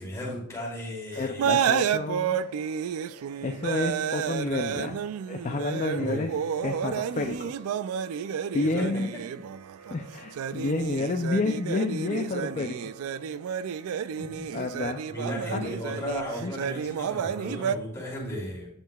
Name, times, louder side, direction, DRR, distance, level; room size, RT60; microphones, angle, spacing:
voice 1, 0.0-1.5 6.0-6.3 8.8-8.9 14.2-14.4 15.1-18.7, equal, 15° left, -5 dB, 2.7 m, -35 dB
voice 2, 1.2-2.4 3.4-5.0 5.3-6.3 6.6-7.5 8.5-9.1 9.9-12.9 14.5-15.0 15.5-15.7 16.4-16.5, left 3 dB, 35° left, 5 dB, 0.4 m, -29 dB
sound 1, 1.2-17.8, right 8 dB, 80° right, 0.3 m, -31 dB
10.0 x 5.7 x 2.3 m, 0.67 s
head